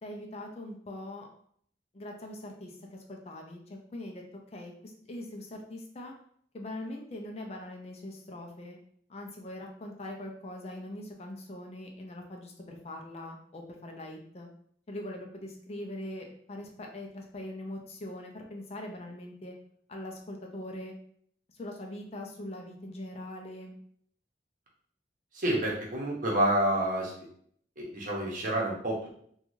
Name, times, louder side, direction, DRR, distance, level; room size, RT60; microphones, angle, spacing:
voice 1, 0.0-1.3 1.9-4.2 4.5-6.1 6.5-8.8 9.1-14.5 14.9-19.5 19.9-20.9 21.5-23.7, left 1 dB, 35° left, 2 dB, 0.4 m, -42 dB
voice 2, 25.3-27.3 27.8-29.1, right 1 dB, 50° right, -3 dB, 0.8 m, -29 dB
2.6 x 2.3 x 3.0 m, 0.63 s
head